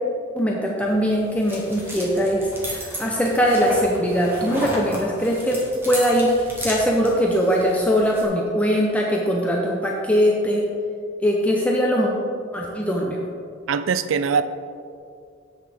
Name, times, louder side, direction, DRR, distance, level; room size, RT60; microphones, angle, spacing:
voice 1, 0.3-5.6 5.8-10.6 11.2-12.1 12.5-13.3, equal, 5° left, -2 dB, 0.6 m, -21 dB
sound 1, 0.8-8.3, equal, 10° right, 1.3 m, -34 dB
voice 2, 13.7-14.4, right 6 dB, 75° right, 11 dB, 0.4 m, -21 dB
7.7 x 6.4 x 3.5 m, 2.3 s
head